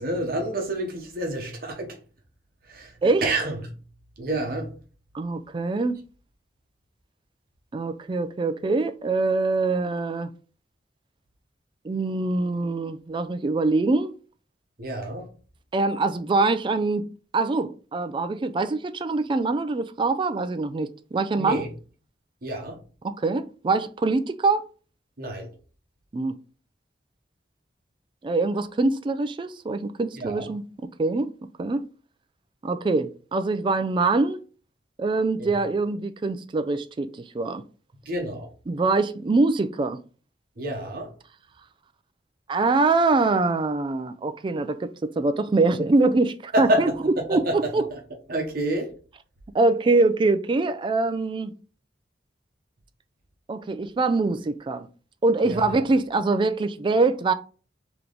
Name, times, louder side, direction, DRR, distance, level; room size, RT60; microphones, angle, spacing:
voice 1, 0.0-2.0 2.7-3.6 4.2-4.7 14.8-15.3 21.3-21.7 22.4-22.8 25.2-25.5 30.2-30.5 35.4-35.5 38.1-38.5 40.6-41.1 46.5-47.6 47.9-48.0 48.3-48.9 55.4-55.7, right 1 dB, 55° right, 0.9 m, -28 dB
voice 2, 5.1-6.0 7.7-10.3 11.8-14.1 15.7-17.1 17.3-21.7 23.0-24.6 26.1-26.4 28.2-30.7 31.0-31.3 31.6-31.9 32.6-34.4 35.0-37.6 38.7-40.0 42.5-47.8 49.5-51.5 53.5-54.9 55.2-57.3, right 3 dB, 30° right, 0.3 m, -24 dB
3.4 x 3.0 x 3.8 m
head